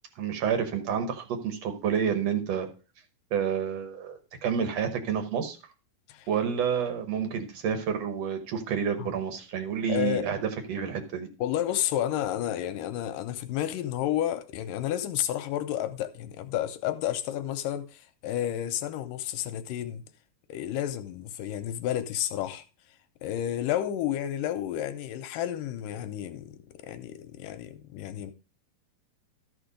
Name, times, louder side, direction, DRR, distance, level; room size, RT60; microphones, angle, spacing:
voice 1, 0.1-2.7 3.3-5.6 6.3-10.4 10.7-11.3, right 7 dB, 65° right, 1.7 m, -29 dB
voice 2, 9.9-10.3 11.4-20.0 20.5-22.6 23.2-26.6 26.8-28.3, left 11 dB, 80° left, 2.1 m, -31 dB
13.5 x 4.5 x 5.0 m
omnidirectional pair, 4.4 m